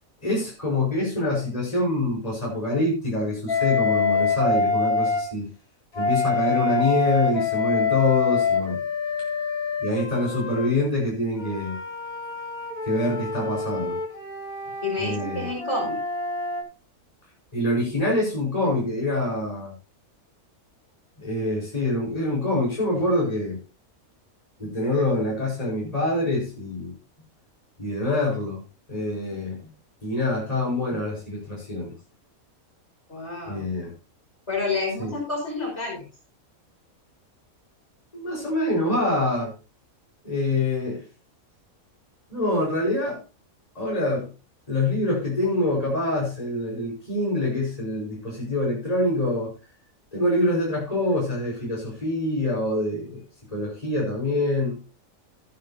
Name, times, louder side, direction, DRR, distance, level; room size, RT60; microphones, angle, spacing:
voice 1, 0.2-5.5 5.9-8.8 9.8-11.8 12.8-14.0 15.0-15.5 17.5-19.7 21.2-23.6 24.6-26.9 27.8-28.6 28.9-29.6 30.0-31.9 33.5-33.9 35.0-35.1 38.1-39.5 40.2-41.0 42.3-43.2 43.7-44.3 44.7-49.5 50.1-53.2 53.5-54.8, left 1 dB, 25° left, -5 dB, 4.7 m, -25 dB
Wind instrument woodwind instrument, 3.5-5.3 5.9-10.7 11.4-16.6, left 4 dB, 75° left, 3.3 m, -26 dB
voice 2, 14.8-16.0 33.1-33.7 34.5-36.0, left 3 dB, 50° left, -2 dB, 5.7 m, -29 dB
15.5 x 9.3 x 2.8 m, 0.31 s
omnidirectional pair, 1.5 m